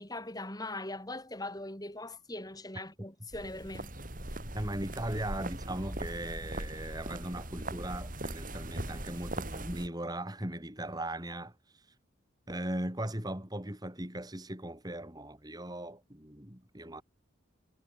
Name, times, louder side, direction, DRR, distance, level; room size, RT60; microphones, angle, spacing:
voice 1, 0.0-3.9, left 2 dB, 20° left, 6.7 m, -41 dB
sound 1, 3.3-9.9, right 1 dB, 40° right, 7.3 m, -40 dB
voice 2, 4.5-11.8 12.5-17.0, right 1 dB, 20° right, 3.8 m, -38 dB
head